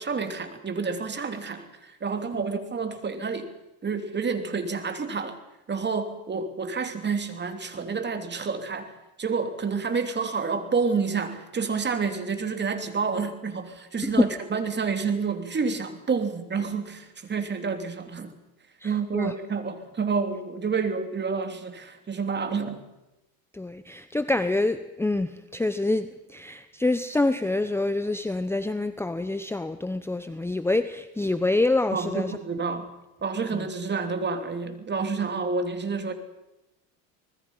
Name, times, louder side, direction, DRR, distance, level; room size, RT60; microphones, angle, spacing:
voice 1, 0.0-3.6 3.8-5.4 5.7-8.9 9.2-18.4 18.8-22.8 31.9-32.8 33.2-36.1, right 5 dB, 30° right, 8 dB, 2.9 m, -29 dB
voice 2, 18.8-19.3 23.5-32.4 33.5-33.7, left 2 dB, 5° left, 11 dB, 0.9 m, -27 dB
25.5 x 20.0 x 5.7 m, 0.97 s
supercardioid pair, 100°, 37 cm